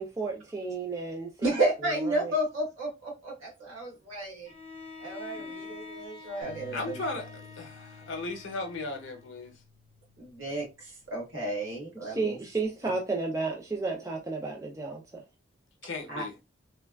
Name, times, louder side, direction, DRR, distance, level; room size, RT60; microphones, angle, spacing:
voice 1, 0.0-1.5 2.0-2.3 12.0-15.2, right 3 dB, 15° right, 0.3 m, -32 dB
voice 2, 1.4-4.5 5.0-7.0 10.2-12.4 16.1-16.2, right 1 dB, 70° right, 1.5 m, -32 dB
Bowed string instrument, 4.4-9.5, left 4 dB, 30° left, 0.6 m, -46 dB
voice 3, 5.2-5.8 6.7-9.5 15.8-16.3, left 2 dB, 65° left, 0.7 m, -37 dB
Bass guitar, 6.4-10.9 11.3-12.7, left 4 dB, 45° right, 0.7 m, -53 dB
3.3 x 2.3 x 2.2 m
head